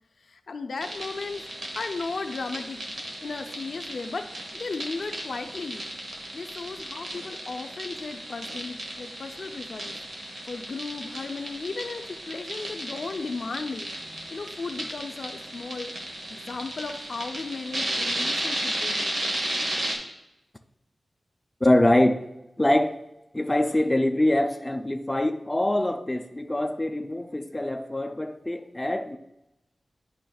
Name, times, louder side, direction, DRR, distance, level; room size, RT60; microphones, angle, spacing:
voice 1, 0.2-1.4 1.7-2.8 3.2-4.3 4.5-5.9 6.3-10.0 10.5-13.9 14.3-15.9 16.3-19.2, left 4 dB, 75° left, 6 dB, 0.5 m, -35 dB
sound 1, 0.8-20.0, right 1 dB, 75° right, 1.2 m, -34 dB
voice 2, 21.6-22.2 22.6-23.0 23.3-29.2, left 1 dB, 20° left, 5 dB, 0.4 m, -24 dB
10.5 x 5.0 x 2.3 m, 0.88 s
wide cardioid pair, 90°, 0 cm